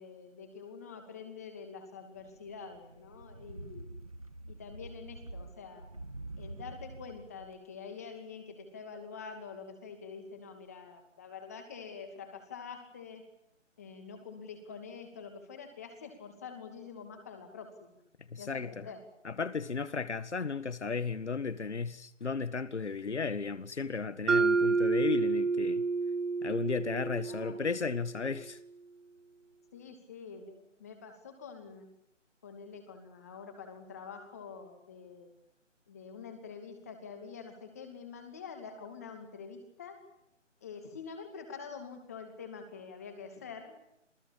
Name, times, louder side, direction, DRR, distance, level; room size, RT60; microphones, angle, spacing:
voice 1, 0.0-3.9 4.5-5.9 6.4-13.2 13.8-18.0 18.4-19.0 27.2-27.6 29.7-31.9 32.4-35.3 35.9-40.0 40.6-43.7, left 5 dB, 10° left, 2.5 m, -46 dB
sound 1, 2.1-7.5, right 2 dB, 30° right, 0.9 m, -47 dB
voice 2, 18.3-18.8 19.2-25.8 26.4-28.6, left 4 dB, 60° left, 1.8 m, -34 dB
Mallet percussion, 24.3-28.3, right 4 dB, 70° right, 1.1 m, -29 dB
28.0 x 19.0 x 8.8 m
figure-of-eight pair, 175°, 38 cm